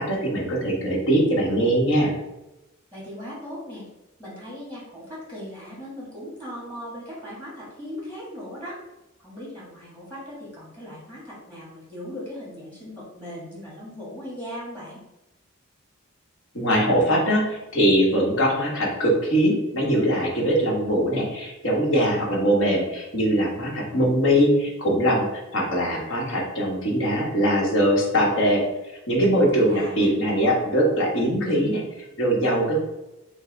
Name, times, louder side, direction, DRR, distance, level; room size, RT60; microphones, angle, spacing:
voice 1, 0.0-2.1 16.5-28.6 29.1-31.8 32.2-32.8, equal, 60° left, -2 dB, 1.2 m, -21 dB
voice 2, 2.9-3.8 4.2-8.8 9.2-15.0 29.5-30.1, equal, 10° left, -7 dB, 1.4 m, -38 dB
5.4 x 2.1 x 3.9 m, 0.96 s
head